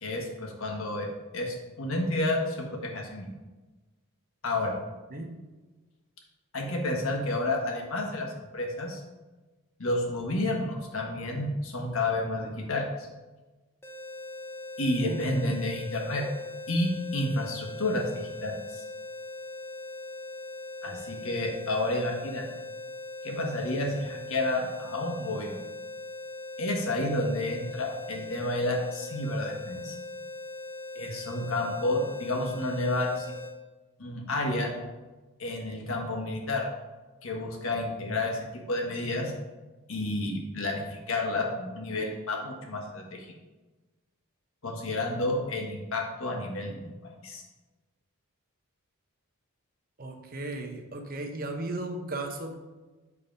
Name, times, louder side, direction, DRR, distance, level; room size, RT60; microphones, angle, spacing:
voice 1, 0.0-1.1 1.3-3.3 4.4-4.8 6.5-9.0 9.8-13.1 14.8-16.3 16.7-18.8 20.8-22.4 23.2-25.6 26.6-30.0 30.9-33.3 34.0-34.7 35.4-36.7 37.2-39.3 39.9-43.3 44.6-47.4, left 2 dB, 65° left, 1 dB, 1.4 m, -30 dB
sound 1, 13.8-33.5, left 2 dB, 10° left, 0.8 m, -40 dB
voice 2, 50.0-52.5, right 2 dB, 40° right, 3 dB, 0.9 m, -35 dB
7.3 x 4.1 x 5.2 m, 1.2 s
head